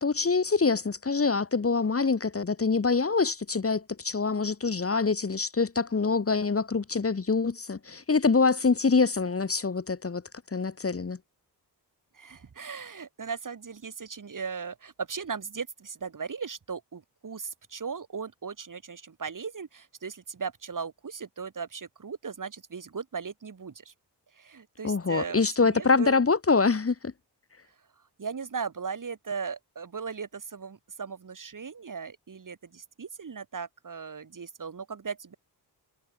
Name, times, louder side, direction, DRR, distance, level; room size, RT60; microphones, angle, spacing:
voice 1, 0.0-10.2 10.5-11.2 24.8-27.1, left 4 dB, 35° left, 1.5 m, -25 dB
voice 2, 12.1-23.9 24.3-26.2 28.2-35.3, right 5 dB, 50° right, 2.5 m, -38 dB
cardioid pair, 80°, 41 cm